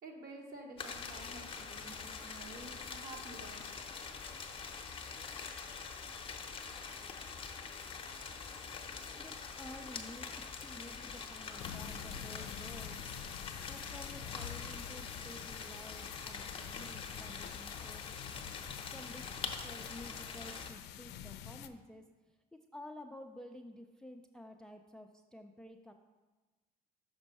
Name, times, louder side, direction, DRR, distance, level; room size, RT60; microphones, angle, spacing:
voice 1, 0.0-3.6, right 2 dB, 55° right, 1 dB, 1.3 m, -50 dB
sound 1, 0.8-20.7, left 5 dB, 35° left, 0.7 m, -45 dB
voice 2, 9.1-13.0 13.7-18.1 18.9-19.3 19.6-25.9, left 1 dB, 5° left, 5 dB, 0.3 m, -52 dB
sound 2, 11.6-21.7, left 10 dB, 80° left, 0.4 m, -47 dB
6.2 x 4.3 x 5.3 m, 1.2 s
cardioid pair, 110°, 17 cm